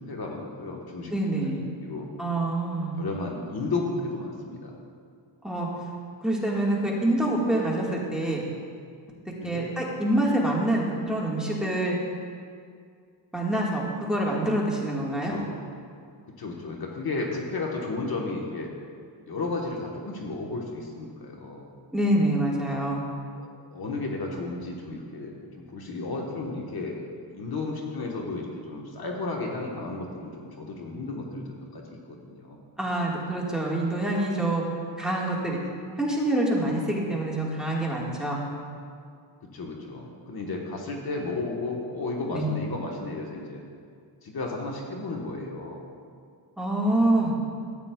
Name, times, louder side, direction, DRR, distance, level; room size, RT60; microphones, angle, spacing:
voice 1, 0.1-1.1 1.4-1.5 1.8-2.1 2.9-4.7 9.4-9.7 15.1-15.5 16.4-18.7 19.3-21.7 22.7-22.8 23.4-27.0 27.3-32.6 39.5-43.6 44.2-45.9, left 3 dB, 55° left, 0 dB, 1.2 m, -33 dB
voice 2, 1.1-1.6 2.2-3.0 5.4-5.7 6.2-8.4 9.4-12.0 13.3-15.3 21.9-23.0 32.8-34.6 35.0-35.6 36.0-38.5 42.3-42.5 46.6-47.3, right 1 dB, ahead, -4 dB, 1.5 m, -26 dB
13.5 x 8.7 x 2.3 m, 2.2 s
wide cardioid pair, 110°, 44 cm